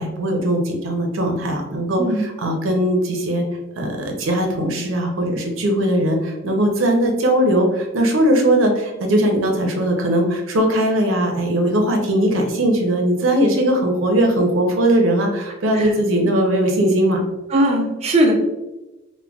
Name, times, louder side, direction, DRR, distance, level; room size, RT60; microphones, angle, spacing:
voice 1, 0.0-3.4 3.8-17.2, right 1 dB, 80° right, 2 dB, 0.6 m, -19 dB
voice 2, 17.5-18.3, right 1 dB, 35° right, 0 dB, 0.5 m, -18 dB
4.7 x 2.1 x 2.3 m, 1.0 s
head